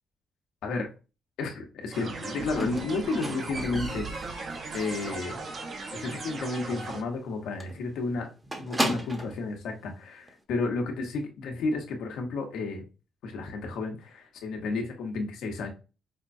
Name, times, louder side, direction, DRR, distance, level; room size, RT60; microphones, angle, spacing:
voice 1, 1.4-4.1 4.7-5.4 5.9-8.3 8.6-12.8 13.2-15.7, left 3 dB, 85° left, 3 dB, 0.9 m, -32 dB
sound 1, 1.9-7.0, right 3 dB, 50° right, 0.8 m, -37 dB
Squeak, 2.6-5.4 5.7-6.1 6.4-6.5 6.8-6.9 7.2-7.3 7.6-9.4 10.3-10.4, right 1 dB, 20° right, 0.8 m, -35 dB
5.0 x 2.2 x 2.6 m, 0.31 s
cardioid pair, 90°, 0 cm